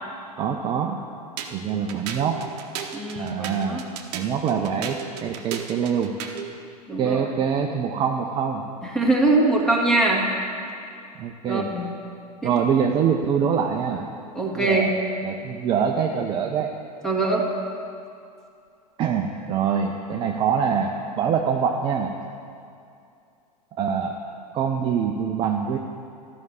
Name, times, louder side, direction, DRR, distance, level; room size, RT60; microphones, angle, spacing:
voice 1, 0.4-1.0 1.5-2.4 3.2-3.8 4.1-6.2 7.0-8.6 11.2-11.7 12.4-14.1 14.4-14.9 15.2-16.7 19.0-22.1 23.8-24.1 24.5-25.8, right 7 dB, 25° right, 3 dB, 0.6 m, -24 dB
sound 1, 1.4-6.5, right 8 dB, 45° right, 1.0 m, -35 dB
voice 2, 2.9-3.8 6.9-7.2 8.8-10.3 11.5-11.9 12.4-12.5 14.4-14.9 17.0-17.4, right 2 dB, 5° left, -3 dB, 1.8 m, -22 dB
13.0 x 6.1 x 8.2 m, 2.5 s
figure-of-eight pair, 90°, 21 cm